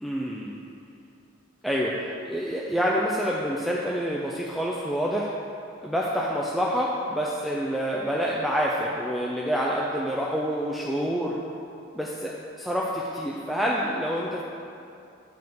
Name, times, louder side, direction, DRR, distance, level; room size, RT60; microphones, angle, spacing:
voice 1, 0.0-0.6 1.6-5.3 5.8-11.4 11.9-14.4, equal, ahead, -4 dB, 0.4 m, -27 dB
7.5 x 3.7 x 5.8 m, 2.6 s
head